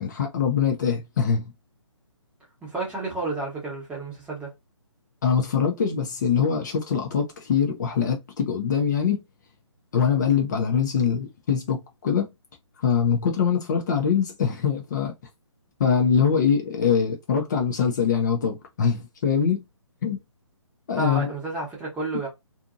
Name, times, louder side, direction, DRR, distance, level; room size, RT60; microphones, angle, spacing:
voice 1, 0.0-1.5 5.2-9.2 9.9-12.3 12.8-15.1 15.8-19.6 20.0-20.2 20.9-21.3, left 6 dB, 35° left, 0.6 m, -23 dB
voice 2, 2.6-4.5 21.0-22.3, right 2 dB, 5° right, 1.0 m, -31 dB
2.6 x 2.6 x 2.5 m
figure-of-eight pair, 150°, 16 cm